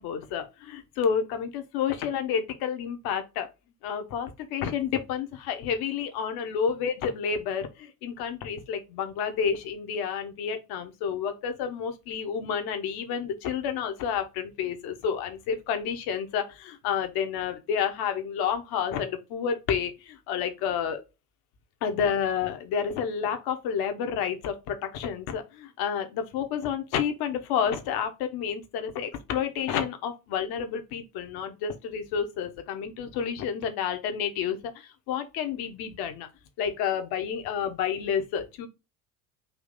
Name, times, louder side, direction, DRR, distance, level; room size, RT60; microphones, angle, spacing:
voice 1, 0.0-3.5 3.8-21.0 21.8-36.3 36.6-38.7, left 7 dB, 55° left, 1.0 m, -30 dB
3.6 x 2.8 x 3.8 m
figure-of-eight pair, 60°, 45 cm